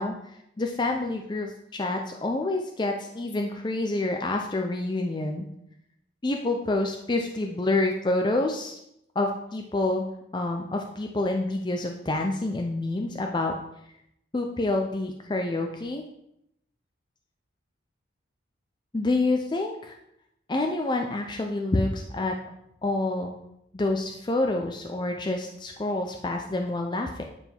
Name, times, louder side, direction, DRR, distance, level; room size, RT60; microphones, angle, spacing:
voice 1, 0.0-5.5 6.2-8.8 9.2-10.1 10.3-13.5 14.3-16.0 18.9-20.0 20.5-22.4 22.8-23.4 23.7-27.2, left 2 dB, 20° left, 3 dB, 0.4 m, -28 dB
9.1 x 3.7 x 4.4 m, 0.79 s
head